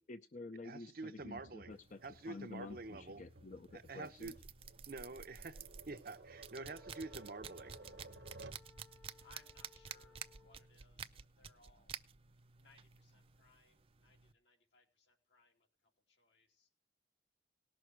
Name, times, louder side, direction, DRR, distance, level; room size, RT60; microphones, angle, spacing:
voice 1, 0.1-2.0 2.3-4.3, left 3 dB, 45° left, 9 dB, 0.6 m, -50 dB
voice 2, 0.6-3.2 3.7-4.3 4.9-7.8, right 3 dB, 55° right, 10 dB, 0.8 m, -48 dB
Tap, 1.2-8.7, right 2 dB, 75° right, 1.3 m, -57 dB
sound 1, 1.7-14.3, right 7 dB, 30° right, 0.5 m, -53 dB
Wind instrument woodwind instrument, 6.6-10.8, left 6 dB, 10° left, 0.9 m, -65 dB
voice 3, 9.2-12.0 12.6-16.7, left 3 dB, 80° left, 2 dB, 2.8 m, -68 dB
18.5 x 6.4 x 4.6 m, 0.31 s
head